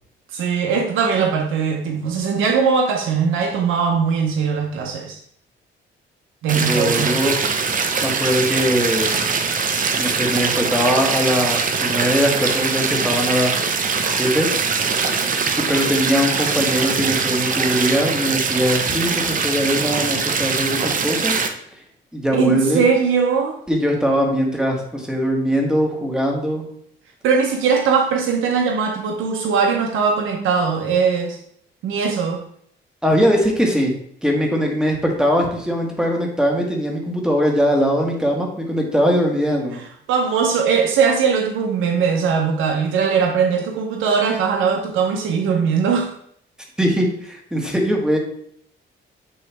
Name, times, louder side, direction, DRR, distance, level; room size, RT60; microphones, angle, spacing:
voice 1, 0.3-5.2 6.4-7.1 22.3-23.6 27.2-31.4 31.8-32.4 40.1-46.1, right 6 dB, 80° right, 2 dB, 0.8 m, -20 dB
sound 1, 6.5-21.5, right 5 dB, 40° right, 0.7 m, -22 dB
voice 2, 6.7-7.4 8.0-9.2 9.9-13.8 14.1-14.8 15.6-21.3 22.1-22.8 23.7-26.7 33.0-34.0 34.2-39.8 46.8-48.2, equal, 5° right, 0 dB, 1.6 m, -21 dB
8.7 x 3.1 x 3.5 m, 0.66 s
cardioid pair, 90°, 20 cm